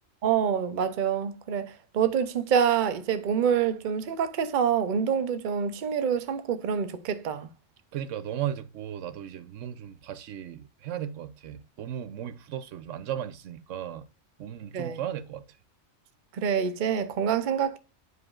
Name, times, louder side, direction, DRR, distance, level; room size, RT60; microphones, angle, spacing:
voice 1, 0.2-7.5 14.7-15.0 16.4-17.8, right 7 dB, 50° right, 0.7 m, -26 dB
voice 2, 7.9-14.1 14.4-15.4, right 10 dB, 90° right, 1.0 m, -36 dB
9.5 x 4.9 x 2.4 m
omnidirectional pair, 1.2 m